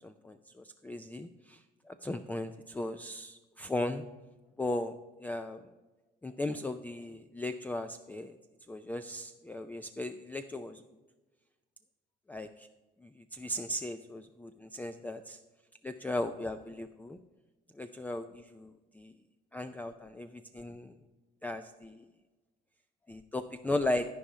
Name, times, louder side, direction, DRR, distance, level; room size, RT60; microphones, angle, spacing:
voice 1, 0.0-1.6 1.9-4.0 4.6-4.9 5.2-5.6 6.2-8.3 8.7-10.8 12.3-12.7 13.3-15.4 15.8-17.2 17.8-18.7 19.0-19.1 19.5-20.9 21.4-22.0 23.1-24.1, left 1 dB, 10° left, 9 dB, 0.4 m, -37 dB
13.0 x 4.9 x 5.5 m, 1.2 s
cardioid pair, 110°, 17 cm